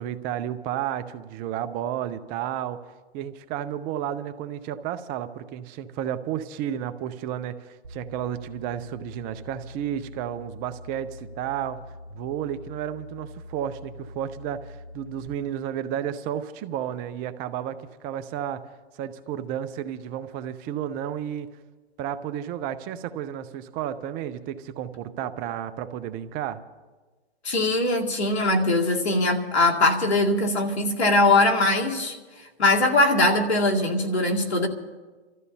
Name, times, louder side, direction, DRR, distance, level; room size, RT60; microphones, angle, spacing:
voice 1, 0.0-2.8 3.1-11.8 12.1-18.6 18.9-21.5 22.0-26.6, right 10 dB, 25° right, 12 dB, 0.6 m, -32 dB
sound 1, 7.8-15.3, left 1 dB, 80° right, 1.3 m, -43 dB
voice 2, 27.4-32.2 32.6-34.7, left 2 dB, 90° left, 1 dB, 2.4 m, -21 dB
30.0 x 13.5 x 2.8 m, 1.3 s
hypercardioid pair, 130°, 32 cm